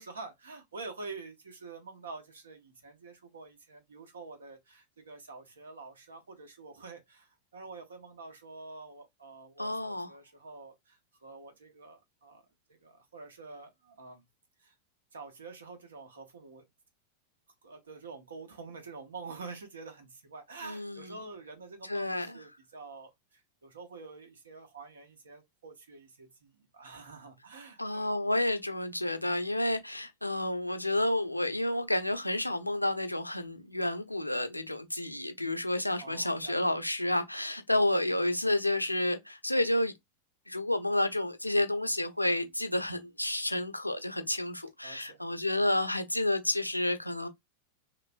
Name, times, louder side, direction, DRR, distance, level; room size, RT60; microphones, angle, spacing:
voice 1, 0.0-12.4 12.8-14.2 14.6-14.7 15.1-16.6 17.6-28.1 36.0-36.6 44.8-45.2, right 4 dB, 70° right, 0.9 m, -47 dB
voice 2, 9.6-10.2 20.6-21.1 21.9-22.4 27.8-39.9 40.5-47.3, left 1 dB, 85° left, 0.5 m, -30 dB
3.1 x 3.0 x 2.5 m
figure-of-eight pair, 90°, 0 cm